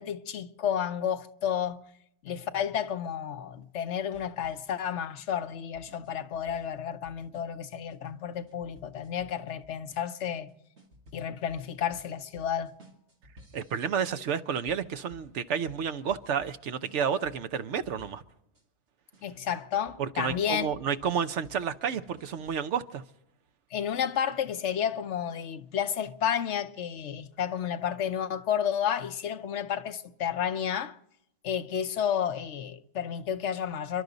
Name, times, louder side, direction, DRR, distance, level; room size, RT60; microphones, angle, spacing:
voice 1, 0.0-1.8 2.2-10.5 11.1-12.7 19.2-20.7 23.7-30.9 31.4-34.0, left 8 dB, 85° left, 1.1 m, -31 dB
sound 1, 4.1-18.6 19.1-22.6, left 1 dB, 75° right, 2.4 m, -57 dB
voice 2, 13.5-18.2 20.0-23.0, right 7 dB, 90° right, 1.1 m, -30 dB
29.0 x 11.5 x 4.0 m
omnidirectional pair, 1.2 m